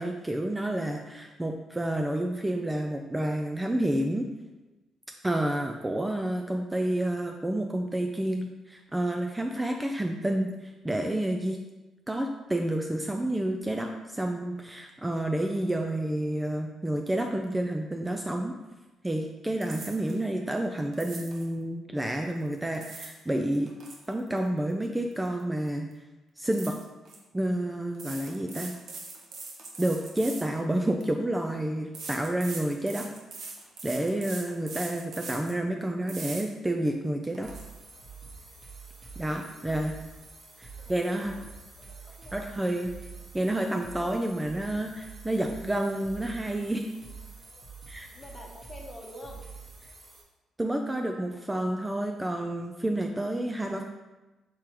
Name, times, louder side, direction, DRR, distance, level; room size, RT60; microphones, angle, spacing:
voice 1, 0.0-4.3 5.2-11.6 12.1-18.5 19.0-23.7 24.1-25.9 26.4-26.8 27.3-28.7 29.8-33.1 33.8-37.5 39.2-40.0 40.6-41.4 42.3-42.9 43.3-46.8 47.9-48.1 50.6-53.8, right 1 dB, 10° right, 3 dB, 0.3 m, -29 dB
sound 1, 19.6-20.2 20.9-21.5 22.5-23.2 23.5-25.4 25.7-25.9 26.5-27.2 27.9-31.1 31.9-35.6 36.1-36.4 36.9-37.0 37.3-37.6, right 3 dB, 65° right, 0.8 m, -42 dB
sound 2, 37.4-50.2, right 5 dB, 40° right, 1.0 m, -46 dB
voice 2, 39.2-39.8 40.8-41.5 41.8-42.5 48.1-49.4, left 1 dB, 30° left, 0 dB, 0.9 m, -47 dB
4.6 x 3.6 x 3.0 m, 1.1 s
cardioid pair, 90°, 0 cm